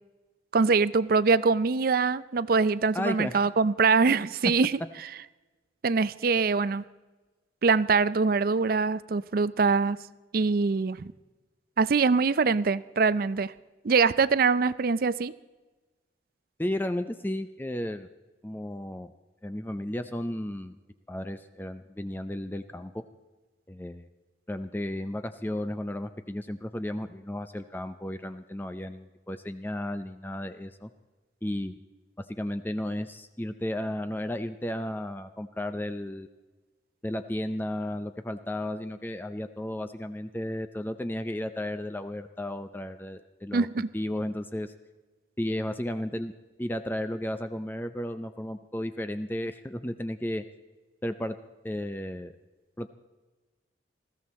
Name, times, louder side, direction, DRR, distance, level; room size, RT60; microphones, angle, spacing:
voice 1, 0.5-4.8 5.8-6.8 7.6-10.0 10.3-11.1 11.8-13.5 13.8-15.3 43.5-43.9, right 4 dB, 55° right, 17 dB, 0.5 m, -23 dB
voice 2, 2.9-3.4 16.6-18.1 18.4-19.1 19.4-20.8 21.1-22.9 23.7-24.1 24.5-30.9 31.4-31.8 32.4-36.3 37.0-43.7 43.9-44.7 45.4-46.3 46.6-50.4 51.0-51.4 51.6-52.3 52.8-52.9, left 1 dB, 10° left, 10 dB, 0.5 m, -33 dB
20.0 x 15.0 x 4.2 m, 1.2 s
head